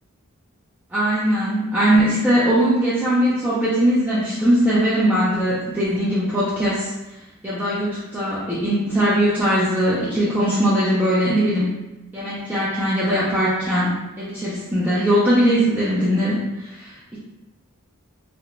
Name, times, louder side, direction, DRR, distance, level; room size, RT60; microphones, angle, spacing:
voice 1, 0.9-6.9 7.4-11.7 12.1-17.2, equal, 5° right, -10 dB, 0.4 m, -20 dB
2.5 x 2.1 x 2.9 m, 0.98 s
head